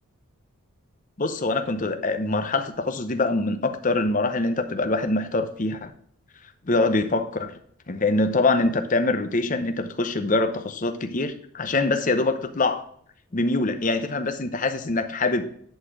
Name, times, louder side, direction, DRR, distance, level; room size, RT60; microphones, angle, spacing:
voice 1, 1.2-5.9 6.6-7.5 7.9-12.8 13.3-15.4, left 2 dB, 35° left, 8 dB, 0.7 m, -24 dB
10.5 x 4.3 x 4.7 m, 0.63 s
head